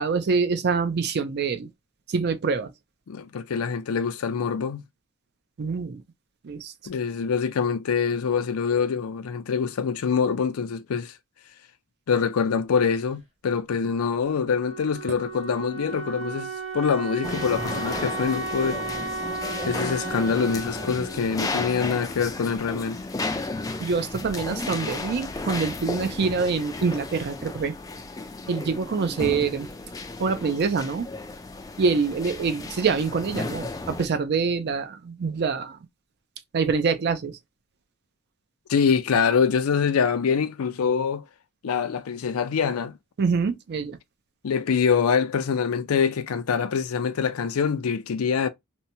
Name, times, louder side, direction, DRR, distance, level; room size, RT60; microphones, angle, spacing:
voice 1, 0.0-1.7 2.1-2.7 5.6-6.0 6.4-6.7 23.8-27.7 28.5-29.7 30.2-31.1 31.8-35.8 36.5-37.4 43.2-44.0, right 5 dB, 50° right, 0.4 m, -25 dB
voice 2, 3.1-4.8 6.9-11.1 12.1-18.8 19.7-23.0 38.7-41.2 41.6-42.9 44.4-48.5, left 6 dB, 85° left, 0.4 m, -25 dB
Wind instrument woodwind instrument, 13.8-22.5, right 3 dB, 30° right, 1.1 m, -35 dB
sound 1, 17.2-34.1, left 3 dB, 15° left, 0.3 m, -34 dB
2.8 x 2.1 x 2.7 m
head